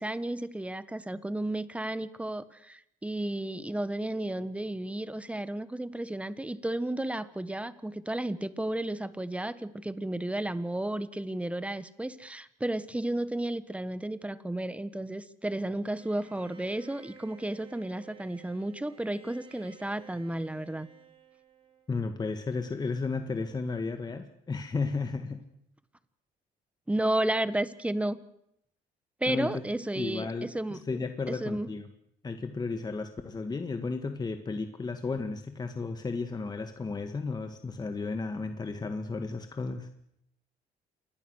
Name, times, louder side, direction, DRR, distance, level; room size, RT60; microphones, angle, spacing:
voice 1, 0.0-20.9 26.9-28.2 29.2-30.8 31.3-31.7, right 1 dB, 5° right, 14 dB, 1.4 m, -33 dB
Bowed string instrument, 16.0-22.0, right 6 dB, 30° right, 4.7 m, -54 dB
voice 2, 21.9-25.4 29.3-29.5 29.9-31.9 32.2-39.9, left 4 dB, 25° left, 7 dB, 1.8 m, -33 dB
28.0 x 22.5 x 6.5 m, 0.75 s
cardioid pair, 110°, 17 cm